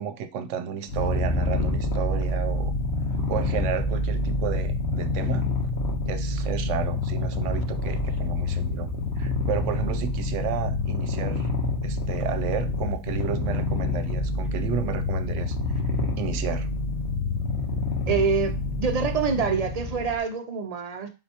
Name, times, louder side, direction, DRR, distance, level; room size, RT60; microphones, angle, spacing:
voice 1, 0.0-2.8 3.1-5.5 6.1-8.9 9.2-11.5 11.8-15.8 16.2-16.7, right 8 dB, 80° right, 9 dB, 0.9 m, -32 dB
Purr, 0.9-20.2, left 2 dB, 60° left, 1.3 m, -27 dB
voice 2, 18.1-18.5 18.8-21.1, right 5 dB, 50° right, 6 dB, 0.5 m, -25 dB
4.3 x 3.7 x 2.8 m, 0.30 s
omnidirectional pair, 1.3 m